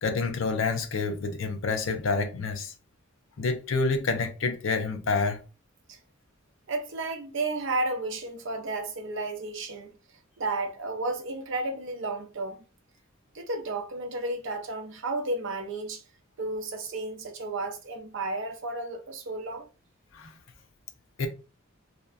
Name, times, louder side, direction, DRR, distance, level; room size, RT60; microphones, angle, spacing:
voice 1, 0.0-2.7 3.4-5.4 20.1-20.3 21.2-21.3, left 4 dB, 65° left, 0.5 m, -28 dB
voice 2, 6.7-9.9 10.4-12.6 13.3-16.0 16.4-19.7, right 2 dB, 60° right, 0.6 m, -32 dB
2.8 x 2.2 x 2.4 m
head